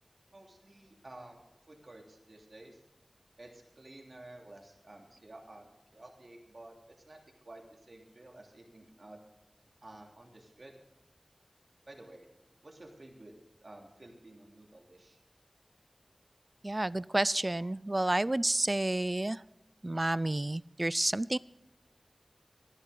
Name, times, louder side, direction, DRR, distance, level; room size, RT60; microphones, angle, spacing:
voice 1, 0.3-2.8 3.4-6.7 7.0-7.2 7.4-7.6 7.9-9.2 9.8-10.7 11.9-12.3 12.6-13.3 13.6-15.2, right 1 dB, 65° right, 1 dB, 3.0 m, -52 dB
voice 2, 16.6-19.4 19.8-21.4, right 1 dB, 35° right, 20 dB, 0.4 m, -30 dB
16.0 x 11.0 x 3.9 m, 0.96 s
wide cardioid pair, 50°, 0 cm